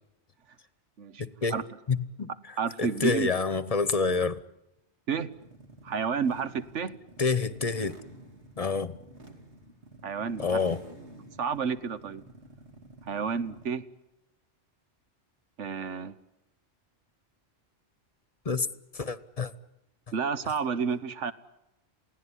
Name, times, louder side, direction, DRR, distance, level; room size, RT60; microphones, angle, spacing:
voice 1, 1.2-1.5 1.9-2.3 2.8-4.4 7.2-8.0 8.6-9.0 10.4-10.8 18.4-18.7 18.9-19.5, left 4 dB, 35° left, 1.0 m, -27 dB
voice 2, 2.6-3.3 5.1-5.3 5.8-6.9 10.0-10.6 11.4-12.2 13.1-13.8 15.6-16.1 20.1-21.3, right 6 dB, 90° right, 1.5 m, -30 dB
sound 1, 5.3-13.8, right 1 dB, 70° right, 3.2 m, -51 dB
28.5 x 17.5 x 9.9 m
omnidirectional pair, 1.2 m